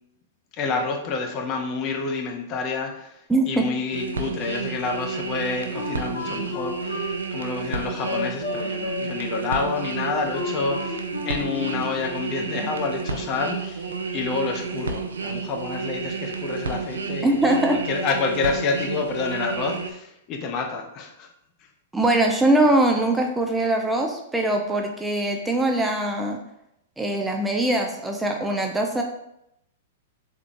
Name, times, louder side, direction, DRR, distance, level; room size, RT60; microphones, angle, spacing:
voice 1, 0.5-3.2 3.5-21.3, left 4 dB, 35° left, 3 dB, 0.7 m, -28 dB
sound 1, 3.9-19.9, right 4 dB, 75° right, 0.5 m, -31 dB
Wind instrument woodwind instrument, 5.7-12.0, left 4 dB, 65° left, 0.9 m, -33 dB
voice 2, 17.2-17.8 21.9-26.4 27.0-29.0, right 1 dB, 5° right, 2 dB, 0.4 m, -22 dB
3.6 x 3.5 x 2.9 m, 0.81 s
figure-of-eight pair, 105°, 0 cm